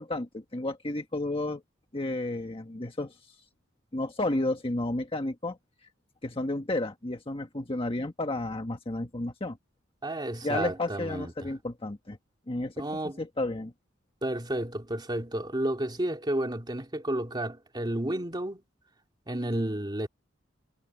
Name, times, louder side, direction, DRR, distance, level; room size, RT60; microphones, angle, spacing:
voice 1, 0.0-1.6 1.9-3.3 3.9-5.6 6.2-9.6 10.4-12.2 12.5-12.8 13.2-13.7, left 2 dB, 30° left, 1.5 m, -32 dB
voice 2, 10.0-11.5 12.8-13.2 14.2-18.6 19.3-20.1, right 1 dB, 20° right, 2.8 m, -31 dB
head